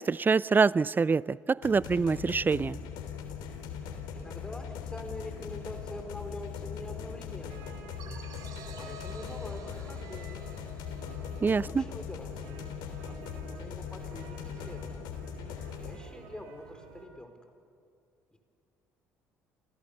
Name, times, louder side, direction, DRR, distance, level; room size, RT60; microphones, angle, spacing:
voice 1, 0.0-2.8 11.4-11.8, right 4 dB, 25° right, 0.6 m, -25 dB
sound 1, 1.6-15.9, left 7 dB, 65° left, 3.5 m, -40 dB
voice 2, 4.1-7.7 8.8-10.5 11.5-12.7 13.0-15.0 15.7-17.4 18.3-18.4, left 1 dB, 10° left, 4.6 m, -45 dB
sound 2, 7.5-17.1, right 4 dB, 75° right, 4.0 m, -50 dB
sound 3, 8.0-12.5, right 7 dB, 55° right, 3.5 m, -52 dB
30.0 x 28.5 x 6.8 m
hypercardioid pair, 60°, 8 cm